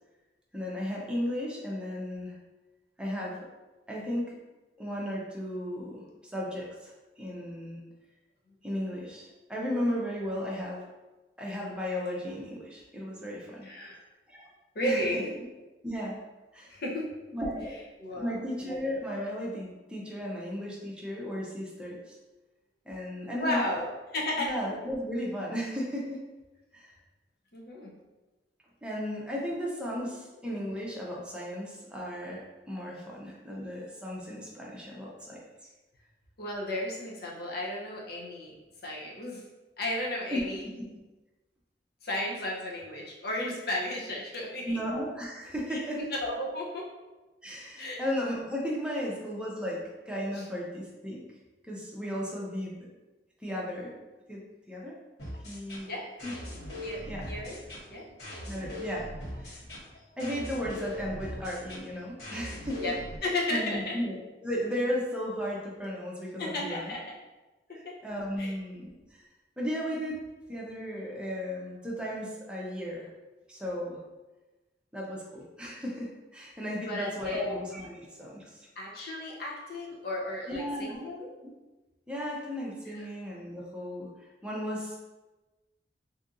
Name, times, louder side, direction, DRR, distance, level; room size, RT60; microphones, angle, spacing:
voice 1, 0.5-2.4 3.0-3.4 3.9-4.4 4.8-7.8 8.6-10.8 11.4-13.7 14.3-14.5 14.8-15.2 15.8-16.2 16.5-16.8 17.3-17.8 18.1-22.1 22.9-23.8 24.4-26.2 26.7-26.9 28.8-35.4 40.3-40.9 44.6-46.0 47.4-51.2 51.6-52.9 53.4-53.9 54.3-54.4 54.7-55.0 55.4-55.9 56.2-56.3 57.1-57.3 58.4-59.1 59.4-59.6 60.2-62.9 63.5-64.2 64.4-66.9 67.7-68.9 69.6-70.2 70.5-73.1 73.5-74.0 74.9-78.7 80.5-81.0 82.1-85.0, equal, 5° right, -4 dB, 0.6 m, -35 dB
voice 2, 13.6-14.0 14.7-15.3 16.7-17.1 18.0-18.3 23.2-24.5 27.5-27.9 36.4-38.5 38.8-39.4 39.8-40.6 42.0-44.8 45.7-46.9 47.8-48.0 50.3-50.4 55.9-56.1 56.8-57.6 57.9-58.0 62.8-63.0 63.2-63.9 66.4-67.2 67.7-67.9 68.4-68.5 76.8-77.5 78.8-81.3 82.9-83.1, left 1 dB, 60° left, -2 dB, 0.7 m, -34 dB
sound 1, 55.2-63.2, left 1 dB, 80° left, 1.3 m, -40 dB
2.7 x 2.5 x 3.7 m, 1.1 s
head